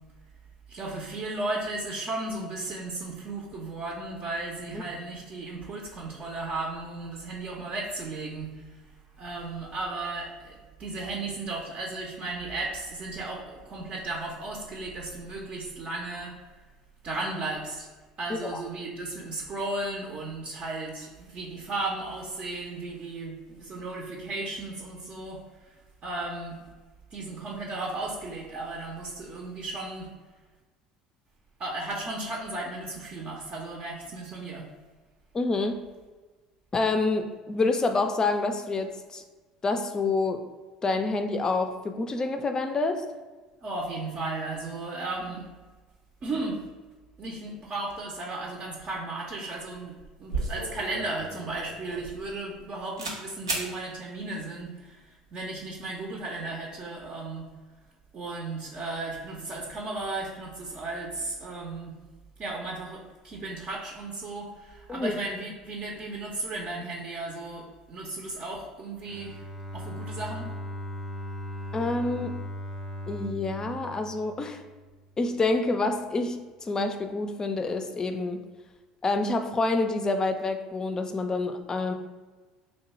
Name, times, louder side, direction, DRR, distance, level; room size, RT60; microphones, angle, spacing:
voice 1, 0.7-8.8 9.2-16.3 17.0-17.9 18.2-26.6 27.1-30.1 31.6-34.7 43.6-45.5 46.2-46.6 47.2-57.5 58.1-62.0 62.4-69.4 69.7-70.5, right 2 dB, 40° right, -2 dB, 0.6 m, -35 dB
voice 2, 18.3-18.6 35.3-35.8 36.7-39.2 39.6-40.4 40.8-43.0 64.9-65.1 71.7-72.4 73.1-74.6 75.2-78.4 79.0-81.9, left 3 dB, 25° left, 7 dB, 0.4 m, -27 dB
sound 1, 49.6-49.7 50.0-52.7 53.0-53.2 53.5-53.7, right 3 dB, 90° right, 0.5 m, -34 dB
Bowed string instrument, 69.1-75.0, equal, 10° right, 0.7 m, -38 dB
2.9 x 2.2 x 4.1 m, 1.3 s
hypercardioid pair, 65°, 3 cm